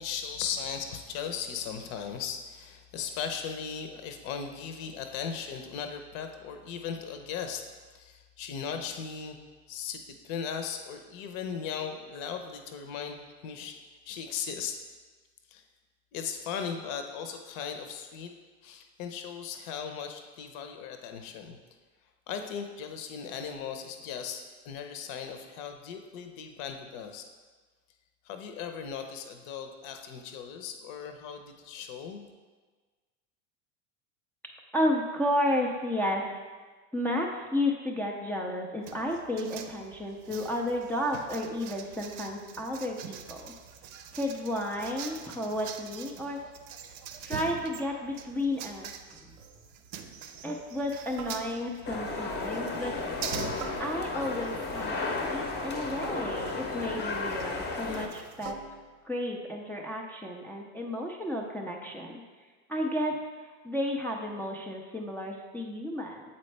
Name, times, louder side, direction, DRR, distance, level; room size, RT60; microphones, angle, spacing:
voice 1, 0.0-7.6 7.9-9.4 9.7-13.8 14.0-14.8 15.5-15.6 16.1-18.3 18.6-21.6 22.3-27.2 28.2-32.3, left 7 dB, 60° left, 6 dB, 0.8 m, -37 dB
voice 2, 34.7-36.4 36.9-43.5 44.1-46.4 47.2-49.3 50.4-52.9 53.8-55.1 55.3-58.6 59.0-62.2 62.7-63.2 63.6-66.2, left 1 dB, 5° left, -1 dB, 0.3 m, -32 dB
sound 1, 38.8-58.5, right 8 dB, 55° right, 0.6 m, -45 dB
sound 2, 49.4-49.7 51.2-52.0 53.6-54.4 56.0-57.0 58.4-59.0, right 6 dB, 90° right, 0.7 m, -45 dB
sound 3, 51.8-58.1, left 3 dB, 25° left, 0.7 m, -33 dB
7.4 x 4.3 x 3.2 m, 1.4 s
hypercardioid pair, 100°, 44 cm